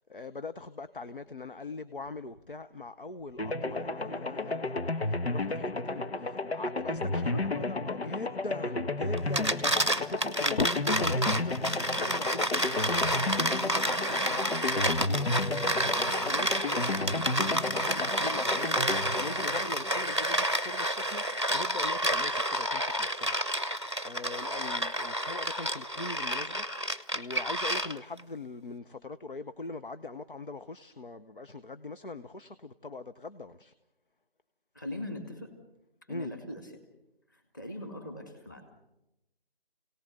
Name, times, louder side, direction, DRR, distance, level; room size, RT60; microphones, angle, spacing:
voice 1, 0.1-7.2 7.5-23.4 24.0-33.7 36.1-36.3, left 3 dB, 55° left, 11 dB, 0.9 m, -41 dB
sound 1, 3.4-20.3, left 2 dB, 85° left, 1.5 m, -32 dB
sound 2, 9.2-28.2, right 1 dB, 30° right, 0.7 m, -30 dB
voice 2, 34.7-35.5 36.0-36.7 37.3-38.7, left 1 dB, 20° left, 6 dB, 2.1 m, -40 dB
28.0 x 18.0 x 6.6 m, 0.91 s
figure-of-eight pair, 175°, 31 cm